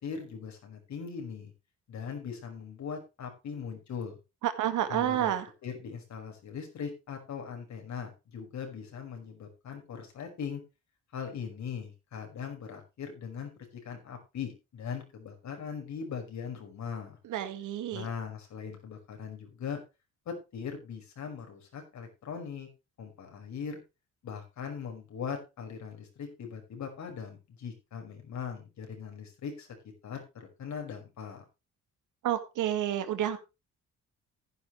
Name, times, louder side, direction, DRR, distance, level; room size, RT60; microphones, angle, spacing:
voice 1, 0.0-1.5 1.9-4.1 4.9-5.3 5.6-10.6 11.1-13.5 13.8-17.2 17.9-19.8 20.3-22.7 23.0-23.8 24.2-29.7 30.0-31.4, left 6 dB, 65° left, 3 dB, 5.5 m, -40 dB
voice 2, 4.4-5.5 17.3-18.1 32.2-33.4, right 11 dB, 80° right, 10 dB, 2.0 m, -29 dB
15.0 x 10.0 x 3.2 m, 0.27 s
cardioid pair, 90°, 30 cm